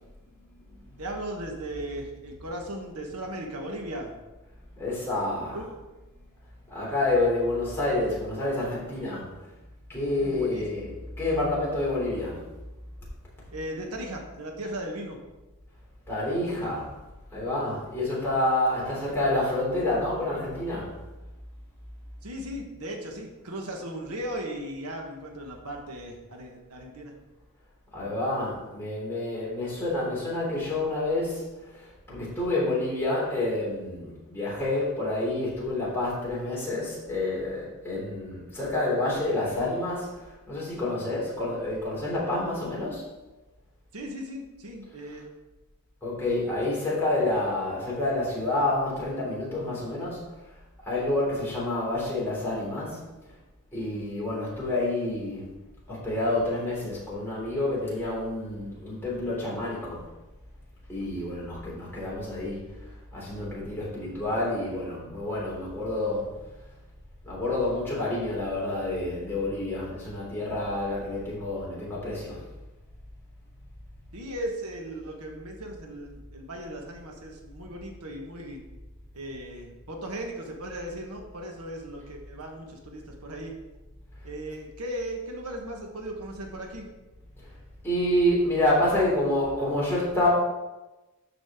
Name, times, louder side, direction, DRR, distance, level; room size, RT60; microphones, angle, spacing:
voice 1, 1.0-4.1 5.5-5.7 10.1-10.7 13.5-15.2 22.2-27.1 43.9-45.3 74.1-78.6 79.1-83.5 84.2-86.8, right 1 dB, 85° right, 1 dB, 1.4 m, -37 dB
voice 2, 4.8-5.6 6.7-9.3 9.9-10.8 11.2-12.4 16.1-16.9 17.3-20.9 27.9-43.0 46.0-50.3 50.8-53.1 53.7-55.5 55.9-60.1 60.9-62.7 63.1-66.3 67.2-72.4 87.8-90.3, left 1 dB, 10° left, -7 dB, 3.3 m, -28 dB
12.5 x 5.0 x 3.8 m, 1.1 s
head